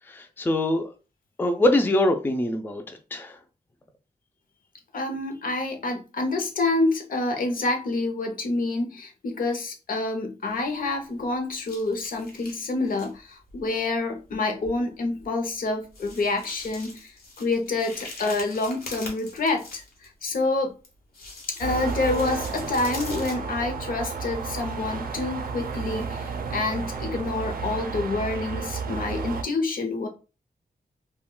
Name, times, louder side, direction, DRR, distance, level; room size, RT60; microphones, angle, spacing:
voice 1, 0.1-0.9 1.4-3.4, left 1 dB, 15° left, 0.3 m, -24 dB
voice 2, 4.9-17.0 17.4-19.8 20.2-20.7 21.6-26.2 26.5-30.1, left 3 dB, 65° left, 0.6 m, -27 dB
sound 1, 10.5-11.2 11.6-13.1 13.5-13.7 14.3-14.4 14.6-14.8 15.2-15.3 15.9-20.3 20.8-23.3, left 2 dB, 90° left, 1.0 m, -43 dB
sound 2, 21.6-29.4, right 5 dB, 70° right, 0.4 m, -32 dB
2.3 x 2.2 x 3.7 m
wide cardioid pair, 120°, 15 cm